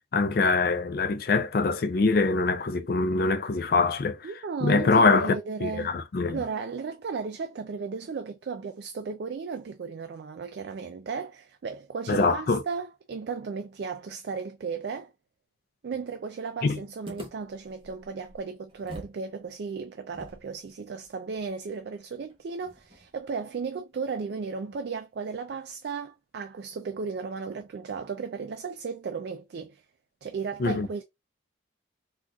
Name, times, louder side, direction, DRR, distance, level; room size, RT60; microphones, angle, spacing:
voice 1, 0.1-4.3 4.6-5.3 5.6-6.4 12.1-12.6 16.6-16.8 30.6-30.9, left 4 dB, 50° left, 0.4 m, -24 dB
voice 2, 4.2-5.9 6.3-15.1 15.8-29.8 30.2-31.0, right 5 dB, 55° right, 0.3 m, -35 dB
sound 1, 17.0-19.2 19.5-19.6 20.1-23.3, equal, 30° right, 0.8 m, -47 dB
3.9 x 2.4 x 2.3 m
head